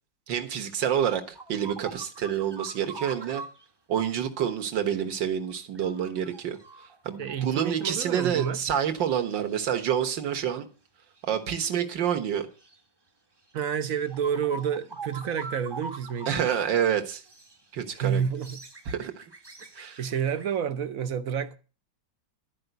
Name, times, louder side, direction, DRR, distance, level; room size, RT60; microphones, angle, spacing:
voice 1, 0.3-3.4 3.9-6.6 7.1-10.7 11.2-12.5 16.3-17.2 17.7-18.2 18.9-19.2 19.8-20.0, right 9 dB, 80° right, 2.0 m, -28 dB
sound 1, 0.7-3.6 5.0-5.1 5.4-8.1 8.4-8.5 8.9-9.6 10.2-10.3 11.2-11.4 12.6-12.8 13.5-13.6 13.9-16.4 16.7-16.8 17.2-17.6 18.2-20.5, right 3 dB, 20° right, 0.6 m, -44 dB
voice 2, 7.2-8.6 13.5-16.6 17.9-18.6 20.0-21.6, right 8 dB, 60° right, 1.0 m, -29 dB
12.5 x 5.0 x 7.9 m
omnidirectional pair, 2.0 m